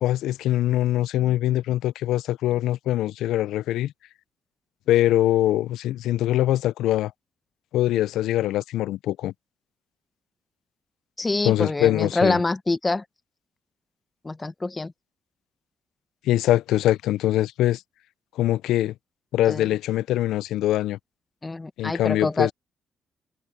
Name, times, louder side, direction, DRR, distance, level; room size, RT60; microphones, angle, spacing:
voice 1, 0.0-3.9 4.9-7.1 7.7-9.3 11.4-12.4 16.3-17.8 18.4-18.9 19.3-21.0 21.8-22.5, left 14 dB, 85° left, 0.3 m, -23 dB
voice 2, 11.2-13.0 14.2-14.9 19.4-19.7 21.4-22.5, left 3 dB, 20° left, 0.8 m, -25 dB
cardioid pair, 90°, 0 cm